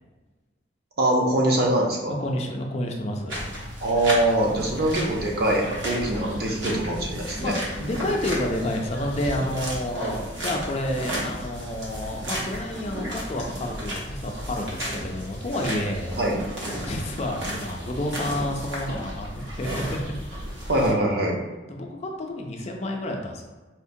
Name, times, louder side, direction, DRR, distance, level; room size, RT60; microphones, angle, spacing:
voice 1, 1.0-2.1 3.8-7.5 16.2-16.4 20.7-21.4, right 1 dB, 55° right, -1 dB, 0.6 m, -23 dB
voice 2, 2.1-3.4 4.5-4.9 7.4-16.2 16.8-19.9 21.7-23.4, left 1 dB, 35° left, 1 dB, 0.4 m, -30 dB
sound 1, 3.3-20.9, equal, 90° right, 0.9 m, -33 dB
4.3 x 2.1 x 2.6 m, 1.2 s
head